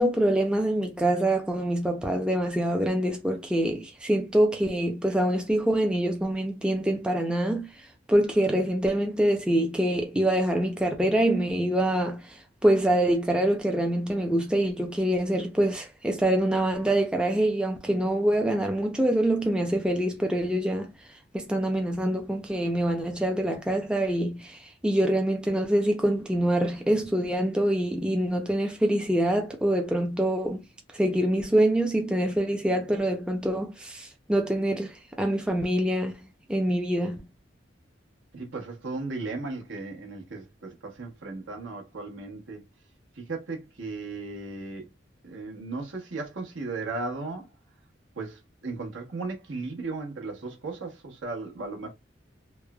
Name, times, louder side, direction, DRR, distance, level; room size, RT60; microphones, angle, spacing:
voice 1, 0.0-37.3, right 1 dB, 5° right, 0.4 m, -25 dB
voice 2, 38.3-42.6 43.2-44.9 45.2-47.5 48.2-51.9, right 3 dB, 85° right, 0.9 m, -36 dB
3.1 x 2.0 x 2.2 m
head